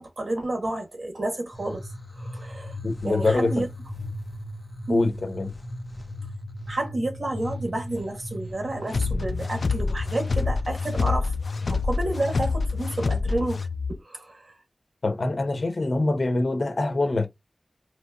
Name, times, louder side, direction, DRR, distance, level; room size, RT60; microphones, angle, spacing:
voice 1, 0.0-2.8 3.0-3.7 4.9-5.1 6.7-11.3 11.7-13.6 14.0-14.5, right 1 dB, 60° right, 1.7 m, -30 dB
sound 1, 1.5-10.6, equal, 20° left, 1.1 m, -37 dB
voice 2, 2.8-3.6 4.9-5.5 15.0-17.3, left 2 dB, 60° left, 1.0 m, -24 dB
sound 2, 8.9-14.0, left 4 dB, 80° left, 0.3 m, -26 dB
4.4 x 3.3 x 2.6 m
wide cardioid pair, 75°, 0 cm